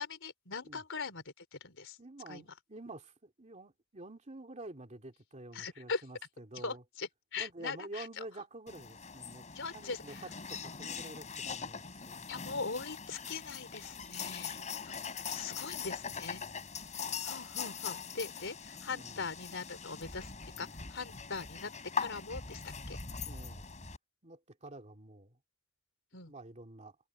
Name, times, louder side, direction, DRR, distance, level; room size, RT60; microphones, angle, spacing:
voice 1, 0.0-2.0 2.3-2.5 5.5-6.0 6.6-8.2 9.5-10.2 12.3-16.4 17.2-21.7 22.0-23.0 26.1-26.3, left 4 dB, 60° left, 4.5 m, -41 dB
voice 2, 2.0-6.8 7.4-9.4 9.7-12.3 16.0-16.7 18.9-19.2 23.2-23.7 24.2-25.4 26.1-27.0, right 2 dB, 30° right, 2.7 m, -49 dB
sound 1, 8.7-24.0, left 6 dB, 35° left, 4.6 m, -42 dB
head